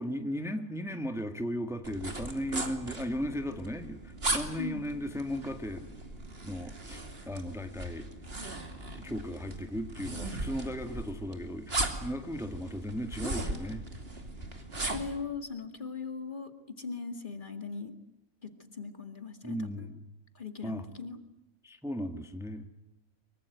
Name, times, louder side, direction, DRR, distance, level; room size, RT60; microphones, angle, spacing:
voice 1, 0.0-5.9 6.4-8.1 8.9-13.9 19.4-20.0 20.6-20.8 21.6-22.7, equal, ahead, 7 dB, 1.5 m, -36 dB
sound 1, 1.8-15.2, right 2 dB, 45° right, 3.0 m, -38 dB
voice 2, 14.8-17.9 18.4-19.9 20.4-21.2, left 5 dB, 35° left, 8 dB, 2.2 m, -39 dB
24.0 x 23.0 x 9.2 m, 0.92 s
omnidirectional pair, 1.4 m